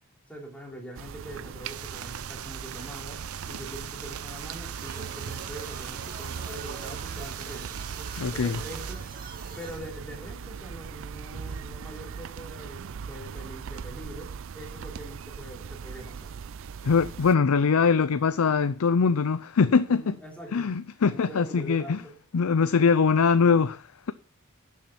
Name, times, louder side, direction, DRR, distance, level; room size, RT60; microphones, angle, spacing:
voice 1, 0.3-7.8 8.3-9.1 9.6-16.3 19.9-20.7 21.1-22.2, right 1 dB, 5° left, 3.1 m, -43 dB
sound 1, 0.9-17.3, right 6 dB, 60° right, 0.4 m, -39 dB
sound 2, 1.6-8.9, right 10 dB, 85° right, 0.8 m, -41 dB
sound 3, 4.8-9.8, right 5 dB, 40° right, 2.0 m, -44 dB
voice 2, 8.2-8.5 16.8-20.2 20.5-22.0 22.3-24.1, left 5 dB, 80° left, 0.5 m, -22 dB
11.5 x 7.3 x 5.8 m
head